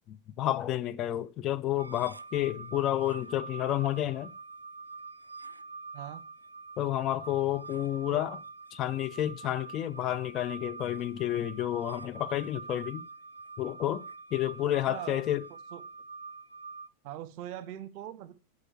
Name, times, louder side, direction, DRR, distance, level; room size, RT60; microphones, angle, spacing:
voice 1, 0.1-4.3 6.8-8.4 8.7-13.0 13.6-15.4, left 13 dB, 35° left, 0.5 m, -30 dB
sound 1, 1.8-16.9, right 4 dB, 80° right, 0.4 m, -45 dB
voice 2, 5.9-6.3 8.1-8.2 14.7-15.3 15.7-15.8 17.0-18.3, right 12 dB, 45° right, 0.8 m, -42 dB
11.0 x 4.9 x 6.1 m
figure-of-eight pair, 90°, 0 cm